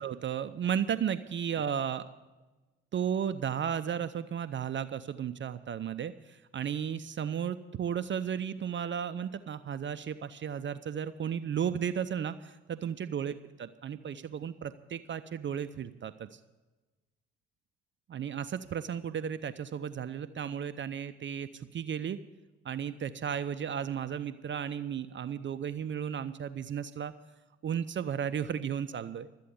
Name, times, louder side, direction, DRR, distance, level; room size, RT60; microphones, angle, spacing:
voice 1, 0.0-2.0 2.9-16.4 18.1-22.2 22.6-27.1 27.6-29.3, right 8 dB, 35° right, 11 dB, 0.6 m, -34 dB
13.0 x 8.4 x 9.4 m, 1.2 s
figure-of-eight pair, 40°, 33 cm